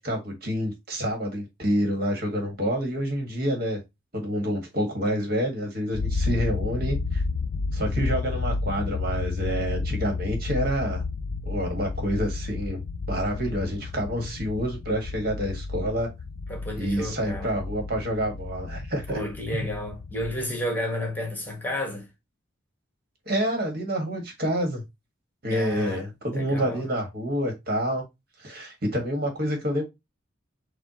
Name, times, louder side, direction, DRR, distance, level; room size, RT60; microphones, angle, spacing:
voice 1, 0.0-3.8 4.1-7.2 7.7-11.0 11.5-12.8 13.1-16.1 16.8-19.2 23.3-24.8 25.4-28.0 28.4-29.8, equal, 50° right, 1.7 m, -28 dB
sound 1, 5.9-20.4, left 3 dB, 55° left, 0.3 m, -31 dB
voice 2, 16.5-17.5 19.1-22.1 25.5-26.1 26.3-26.8, left 1 dB, 10° left, 1.4 m, -31 dB
7.4 x 2.5 x 2.9 m
head